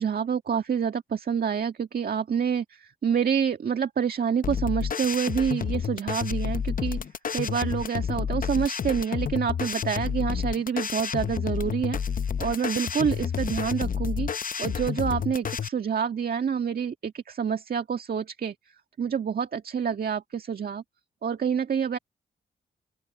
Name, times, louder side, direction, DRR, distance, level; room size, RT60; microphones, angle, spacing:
voice 1, 0.0-7.0 7.3-12.0 12.4-14.3 14.6-18.5 19.0-20.8 21.2-22.0, right 7 dB, 60° right, 1.8 m, -27 dB
sound 1, 4.4-15.7, left 7 dB, 55° left, 0.8 m, -30 dB
open air
supercardioid pair, 55°, 17 cm